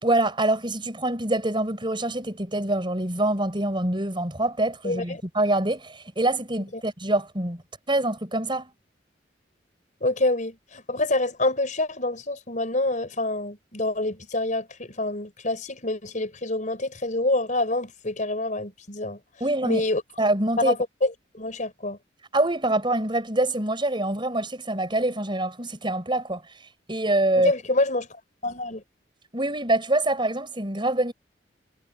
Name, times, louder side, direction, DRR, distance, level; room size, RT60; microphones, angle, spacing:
voice 1, 0.0-7.6 7.9-8.7 19.4-19.8 20.2-20.7 22.3-26.4 26.9-27.5 29.3-31.1, right 1 dB, 25° right, 5.9 m, -25 dB
voice 2, 4.8-5.2 6.7-6.8 10.0-19.2 19.6-20.0 20.6-22.0 27.4-28.1 28.4-28.8, left 2 dB, 45° left, 5.3 m, -27 dB
head